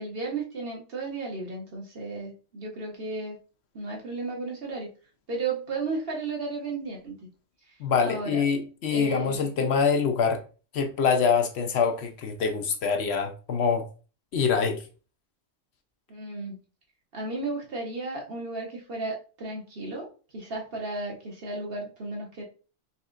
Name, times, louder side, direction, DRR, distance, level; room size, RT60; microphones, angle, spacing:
voice 1, 0.0-3.4 3.7-4.9 5.3-7.1 8.0-8.4 8.9-9.5 16.1-16.6 17.1-22.4, right 3 dB, 55° right, 1.3 m, -34 dB
voice 2, 7.8-10.4 10.7-13.9 14.3-14.8, left 6 dB, 65° left, 0.8 m, -25 dB
4.2 x 3.4 x 2.5 m
omnidirectional pair, 1.2 m